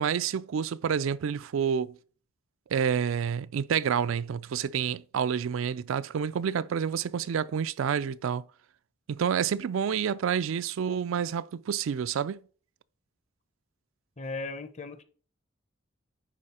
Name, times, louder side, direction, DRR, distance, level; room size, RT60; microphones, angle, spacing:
voice 1, 0.0-2.0 2.7-8.4 9.1-12.4, right 7 dB, 75° right, 0.4 m, -28 dB
voice 2, 14.2-15.0, left 3 dB, 35° left, 0.8 m, -37 dB
10.0 x 4.2 x 4.2 m
head